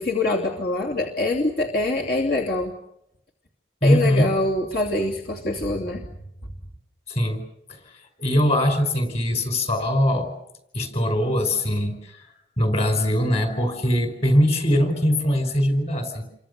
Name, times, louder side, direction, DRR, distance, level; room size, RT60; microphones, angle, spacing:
voice 1, 0.0-2.7 3.8-6.1, left 2 dB, 55° left, 0 dB, 2.9 m, -24 dB
voice 2, 3.8-4.3 7.1-7.4 7.7-7.8 8.2-10.3 10.7-12.3 12.6-16.2, equal, 35° left, 7 dB, 4.9 m, -21 dB
29.0 x 24.0 x 6.8 m, 0.80 s
head